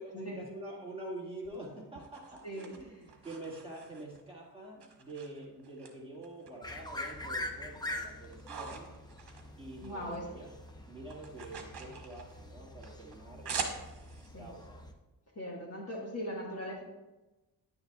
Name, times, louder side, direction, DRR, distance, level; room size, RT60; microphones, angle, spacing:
voice 1, 0.0-8.9 9.6-10.5 10.9-13.5 14.4-14.8, right 1 dB, 15° right, -5 dB, 2.0 m, -46 dB
sound 1, 1.4-4.3 4.8-5.9 6.2-7.2 7.6-10.2 10.5-14.3, right 5 dB, 65° right, 1.4 m, -44 dB
voice 2, 2.4-3.1 9.8-10.3 14.3-14.6 15.3-16.8, equal, 35° left, -2 dB, 1.6 m, -40 dB
sound 2, 6.6-14.9, left 1 dB, 10° left, 0.6 m, -44 dB
10.5 x 9.6 x 2.4 m, 1.1 s
wide cardioid pair, 165°, 42 cm